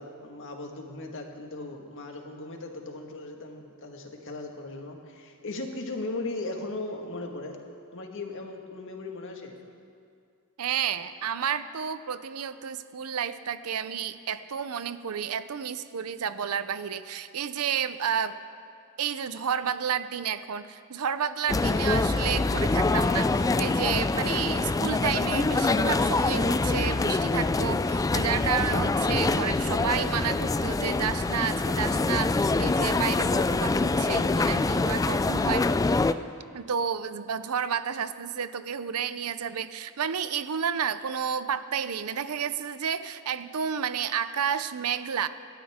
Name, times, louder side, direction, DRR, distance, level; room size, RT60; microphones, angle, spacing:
voice 1, 0.0-7.6 7.9-9.5, left 2 dB, 60° left, 2 dB, 1.8 m, -37 dB
voice 2, 10.6-18.4 19.0-35.7 36.5-45.3, right 7 dB, 75° right, 13 dB, 0.6 m, -31 dB
sound 1, 21.5-36.1, left 3 dB, 15° left, 0.3 m, -25 dB
27.5 x 12.5 x 3.7 m, 2.3 s
head